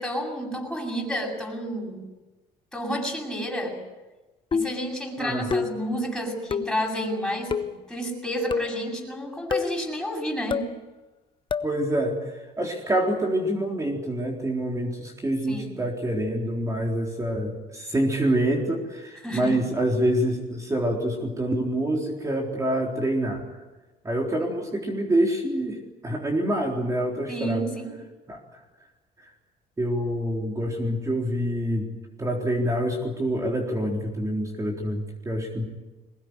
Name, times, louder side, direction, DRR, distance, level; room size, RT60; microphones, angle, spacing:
voice 1, 0.0-2.0 2.7-3.8 4.5-10.7 15.5-15.7 19.2-19.6 27.3-28.0, equal, 5° left, 0 dB, 7.8 m, -30 dB
sound 1, 4.5-4.9 5.5-5.9 6.5-6.8 7.5-7.8 8.5-8.8 9.5-9.8 10.5-10.8 11.5-11.8, left 6 dB, 30° left, 0.9 m, -28 dB
voice 2, 5.2-5.6 11.6-23.4 24.0-25.8 26.0-27.7 28.3-28.4 29.2-29.3 29.8-31.9 32.2-35.7, right 1 dB, 20° right, 0 dB, 3.9 m, -26 dB
22.0 x 20.0 x 9.8 m, 1.2 s
cardioid pair, 110°, 17 cm